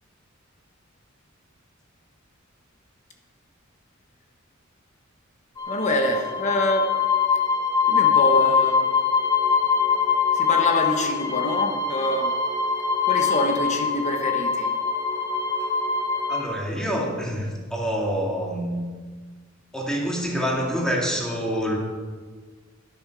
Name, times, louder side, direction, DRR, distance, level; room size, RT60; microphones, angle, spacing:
sound 1, 5.6-16.4, left 6 dB, 20° left, 1.5 m, -23 dB
voice 1, 5.7-6.9 7.9-8.8 10.3-12.3 13.0-14.7, left 1 dB, 35° left, 3 dB, 1.2 m, -25 dB
voice 2, 16.3-18.9 19.7-21.8, equal, 5° left, -2 dB, 2.4 m, -26 dB
11.5 x 8.9 x 6.0 m, 1.5 s
head